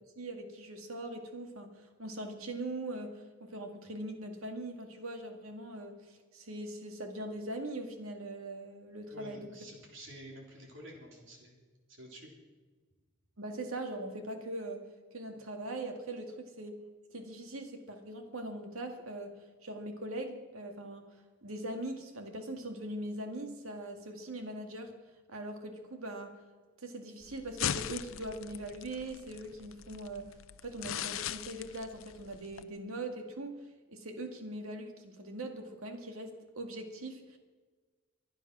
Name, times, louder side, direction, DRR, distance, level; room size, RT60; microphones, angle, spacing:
voice 1, 0.2-9.5 13.4-14.8 15.1-16.8 17.1-19.3 19.6-21.1 21.4-24.9 25.3-26.3 26.8-30.4 30.6-33.6 33.9-37.4, right 1 dB, 80° right, 5 dB, 2.0 m, -41 dB
voice 2, 9.1-11.6 11.9-12.3, right 1 dB, 60° right, 0 dB, 3.6 m, -49 dB
sound 1, 27.2-32.6, left 9 dB, 70° left, 0.6 m, -40 dB
24.0 x 9.0 x 6.1 m, 1.4 s
head